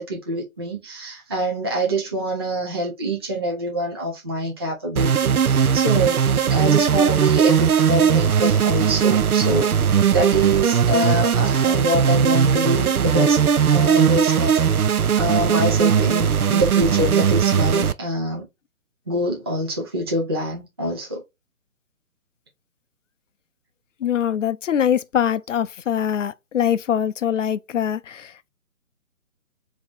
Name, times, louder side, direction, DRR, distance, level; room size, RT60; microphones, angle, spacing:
voice 1, 0.0-9.7 10.1-13.4 13.7-14.6 15.2-18.5 19.1-21.2, right 1 dB, 20° right, 0.4 m, -25 dB
sound 1, 5.0-17.9, right 7 dB, 90° right, 0.5 m, -18 dB
voice 2, 24.0-28.5, left 9 dB, 60° left, 0.5 m, -23 dB
4.6 x 2.9 x 3.4 m
figure-of-eight pair, 140°, 43 cm